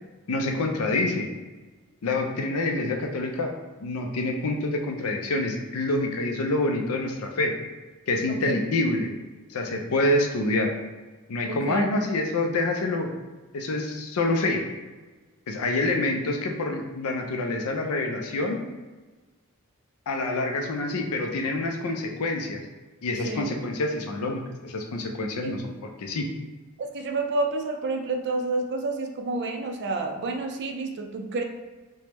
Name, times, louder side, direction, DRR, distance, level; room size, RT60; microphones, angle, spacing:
voice 1, 0.3-1.3 2.0-3.5 3.8-7.5 8.1-9.1 9.5-10.7 11.3-13.1 13.5-14.6 15.5-18.6 20.1-22.6 23.0-26.3, left 2 dB, 75° left, 3 dB, 0.5 m, -27 dB
voice 2, 11.5-11.8 23.2-23.5 25.4-25.5 26.8-31.4, right 3 dB, 50° right, 4 dB, 0.4 m, -29 dB
3.3 x 2.1 x 2.9 m, 1.3 s
head